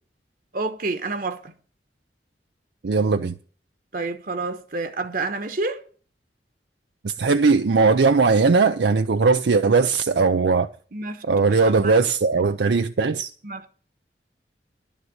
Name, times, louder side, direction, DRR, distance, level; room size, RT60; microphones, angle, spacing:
voice 1, 0.5-1.5 3.9-5.8 10.9-12.1 13.4-13.7, right 3 dB, 50° right, 1.1 m, -29 dB
voice 2, 2.8-3.3 7.0-10.7 11.3-13.3, right 4 dB, 75° right, 0.5 m, -19 dB
11.5 x 7.2 x 8.0 m
head